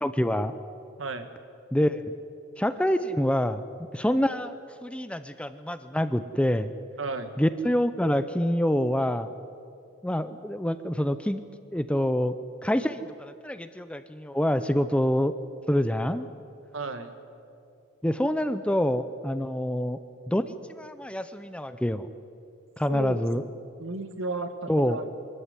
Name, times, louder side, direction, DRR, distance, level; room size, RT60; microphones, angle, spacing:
voice 1, 0.0-0.5 1.7-2.0 2.6-3.6 3.9-4.5 4.8-6.7 7.4-9.3 10.0-11.4 11.7-12.3 12.6-15.3 15.7-16.3 18.0-20.0 20.3-22.1 22.8-23.4 24.7-25.0, equal, 5° left, 11 dB, 0.5 m, -26 dB
voice 2, 7.0-7.3 16.7-17.1 22.9-23.5 23.8-25.1, right 2 dB, 65° right, 9 dB, 1.6 m, -33 dB
23.5 x 13.5 x 9.7 m, 2.5 s
head